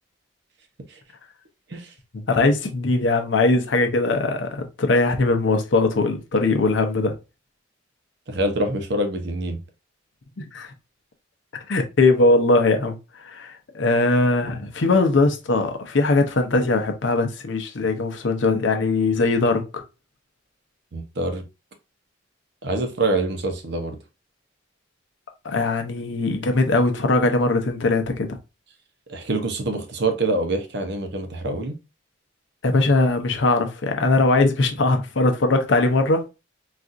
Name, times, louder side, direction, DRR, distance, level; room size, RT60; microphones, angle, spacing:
voice 1, 2.3-7.1 10.4-10.7 11.7-13.0 13.2-19.8 25.4-28.3 32.6-36.3, left 3 dB, 70° left, 0.6 m, -20 dB
voice 2, 8.3-9.6 20.9-21.5 22.6-24.0 29.1-31.8, right 2 dB, 60° right, 0.7 m, -25 dB
4.0 x 2.4 x 2.4 m
head